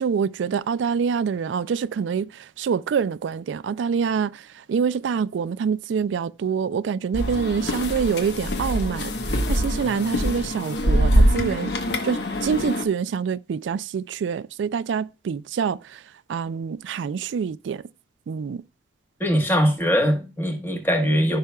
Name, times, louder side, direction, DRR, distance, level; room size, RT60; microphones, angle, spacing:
voice 1, 0.0-11.7 12.0-16.0 16.3-17.9 18.3-18.6, right 6 dB, 90° right, 0.3 m, -26 dB
sound 1, 7.1-12.9, equal, 70° left, 1.2 m, -23 dB
voice 2, 19.2-21.4, equal, 10° left, 1.3 m, -21 dB
14.5 x 5.6 x 2.3 m
head